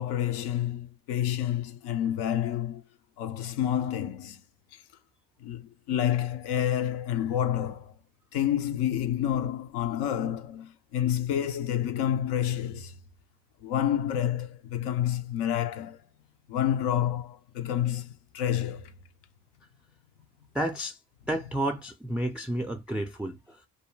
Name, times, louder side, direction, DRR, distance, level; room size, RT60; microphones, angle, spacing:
voice 1, 0.0-2.8 3.2-4.4 5.4-7.9 8.3-12.9 13.6-16.0 16.5-18.9, left 10 dB, 70° left, 0.5 m, -29 dB
voice 2, 20.5-21.0 21.3-23.4, right 1 dB, 5° right, 0.3 m, -30 dB
2.3 x 2.1 x 3.1 m
supercardioid pair, 60°, 43 cm